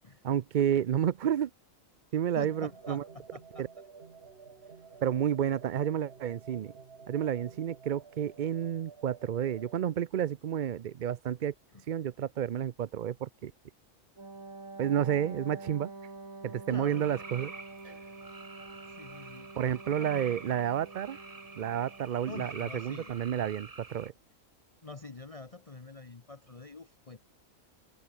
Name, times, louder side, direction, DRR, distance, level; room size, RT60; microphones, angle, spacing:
voice 1, 0.2-1.5 2.1-3.0 3.6-3.7 5.0-6.7 7.1-11.5 11.9-13.5 14.8-15.9 16.4-17.5 19.6-21.2 21.6-24.1, right 10 dB, 65° right, 0.5 m, -30 dB
voice 2, 2.4-3.7 4.6-5.0 11.7-11.8 16.7-17.1 18.9-19.5 19.9-20.4 22.3-23.2 24.8-27.2, left 3 dB, 25° left, 1.1 m, -46 dB
sound 1, 2.4-9.8, right 5 dB, 50° right, 1.7 m, -52 dB
Wind instrument woodwind instrument, 14.2-22.2, right 3 dB, 80° right, 4.5 m, -47 dB
sound 2, 16.9-24.1, right 3 dB, 25° right, 1.5 m, -47 dB
omnidirectional pair, 1.4 m